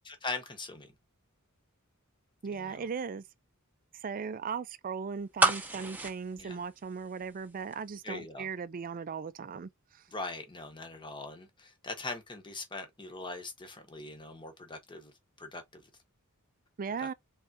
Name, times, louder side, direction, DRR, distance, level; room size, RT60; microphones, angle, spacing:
voice 1, 0.0-0.9 2.5-2.9 6.4-6.6 8.0-8.5 10.1-15.8 17.0-17.1, left 3 dB, 20° left, 1.0 m, -41 dB
voice 2, 2.4-3.2 4.0-10.0 16.8-17.1, right 6 dB, 40° right, 0.4 m, -38 dB
sound 1, 5.4-7.4 7.7-7.8, right 2 dB, 10° right, 0.8 m, -29 dB
3.5 x 3.5 x 2.6 m
head